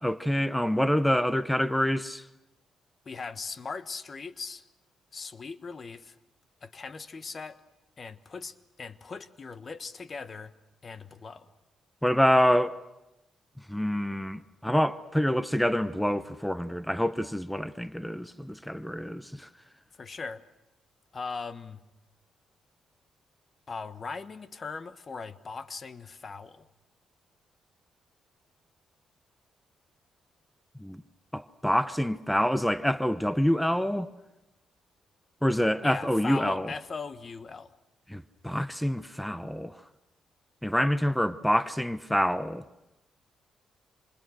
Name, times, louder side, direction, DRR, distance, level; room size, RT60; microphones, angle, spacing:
voice 1, 0.0-2.2 12.0-12.8 13.7-19.5 30.8-31.0 31.3-34.1 35.4-36.7 38.1-39.8 40.6-42.6, equal, 5° left, 0.9 m, -26 dB
voice 2, 3.0-4.6 5.1-6.2 6.6-7.6 8.0-10.5 10.8-11.5 20.0-20.4 21.1-21.8 23.7-26.7 35.8-37.8, left 4 dB, 40° left, 1.3 m, -39 dB
27.5 x 27.5 x 6.5 m
cardioid pair, 80°, 0 cm